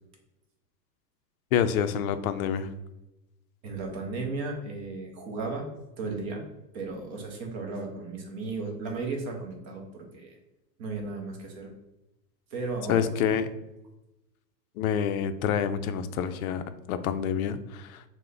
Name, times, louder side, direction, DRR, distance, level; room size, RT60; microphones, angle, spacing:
voice 1, 1.5-2.7 12.9-13.5 14.8-18.0, left 8 dB, 60° left, 10 dB, 0.5 m, -27 dB
voice 2, 3.6-5.7 6.0-6.4 6.7-10.3 10.8-11.7 12.5-13.1, right 3 dB, 25° right, 2 dB, 0.3 m, -35 dB
3.1 x 2.1 x 3.8 m, 0.94 s
hypercardioid pair, 125°, 50 cm